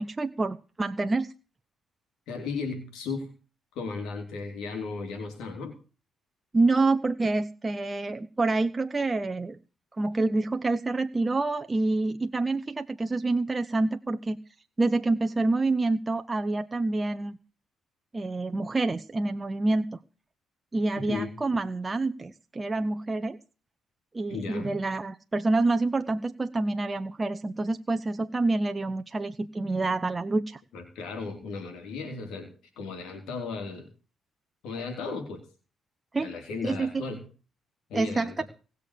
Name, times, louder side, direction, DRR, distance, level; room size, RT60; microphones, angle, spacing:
voice 1, 0.0-1.3 6.5-9.6 10.0-14.4 14.8-17.4 18.1-20.0 20.7-23.4 24.1-30.6 36.1-36.3 36.6-36.9 37.9-38.4, right 2 dB, 25° right, 8 dB, 0.7 m, -27 dB
voice 2, 2.3-3.3 3.8-5.7 21.0-21.3 24.3-24.8 30.7-33.9 34.6-35.4 36.2-37.3 37.9-38.4, left 4 dB, 85° left, 5 dB, 3.4 m, -35 dB
18.5 x 6.7 x 6.6 m, 0.36 s
cardioid pair, 90°, 0 cm